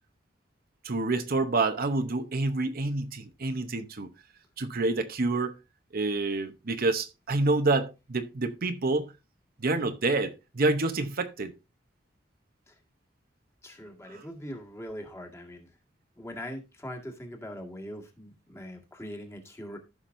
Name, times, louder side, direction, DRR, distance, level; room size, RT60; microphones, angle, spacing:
voice 1, 0.8-4.1 4.6-5.5 5.9-9.1 9.6-11.5 14.1-14.2, right 2 dB, 50° right, 0.8 m, -28 dB
voice 2, 13.6-15.7 16.2-19.8, equal, 15° left, 1.8 m, -41 dB
14.5 x 5.9 x 2.6 m
head